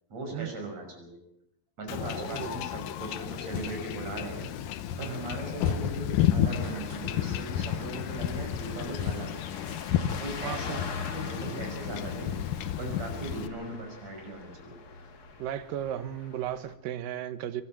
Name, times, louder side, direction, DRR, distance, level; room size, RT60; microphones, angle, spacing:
voice 1, 0.1-1.2 1.8-4.5 5.0-9.4 10.2-12.4 12.7-14.8, right 2 dB, 50° right, 2 dB, 7.1 m, -39 dB
Wind / Ocean / Boat Water vehicle, 1.9-13.5, left 10 dB, 80° left, 2.5 m, -32 dB
voice 2, 2.2-2.6 5.0-5.2 10.4-10.8 11.5-11.6 12.8-13.0 15.4-17.6, right 11 dB, 80° right, 12 dB, 2.7 m, -35 dB
sound 1, 5.3-6.2 6.6-7.3 8.5-9.9, equal, 15° right, 5.8 m, -52 dB
sound 2, 6.4-16.7, left 5 dB, 40° left, 1.4 m, -42 dB
25.5 x 12.5 x 8.9 m, 0.76 s
omnidirectional pair, 4.0 m